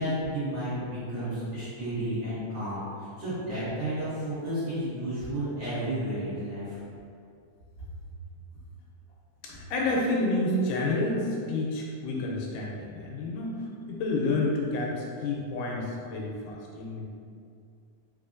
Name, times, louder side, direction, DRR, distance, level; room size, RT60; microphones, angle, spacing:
voice 1, 0.0-6.8, right 1 dB, 55° right, -14 dB, 2.0 m, -32 dB
voice 2, 9.4-17.0, left 2 dB, 80° left, -2 dB, 2.0 m, -29 dB
5.0 x 2.5 x 2.4 m, 2.4 s
omnidirectional pair, 3.6 m